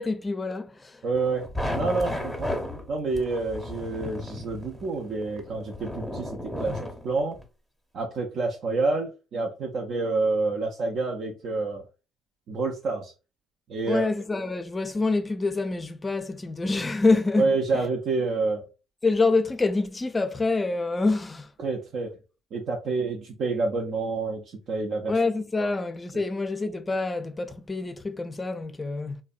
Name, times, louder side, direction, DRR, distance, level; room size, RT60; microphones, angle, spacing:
voice 1, 0.0-1.0 13.9-17.5 19.0-21.5 25.1-29.2, left 3 dB, 25° left, 0.4 m, -26 dB
voice 2, 1.0-2.6 2.9-7.4 7.9-11.9 12.5-13.1 13.7-14.1 17.4-18.6 21.6-22.1 22.5-25.1 25.6-25.7, right 3 dB, 60° right, 0.5 m, -28 dB
sound 1, 1.1-7.4, left 1 dB, ahead, 0.8 m, -34 dB
2.6 x 2.1 x 2.4 m
supercardioid pair, 70°, 0 cm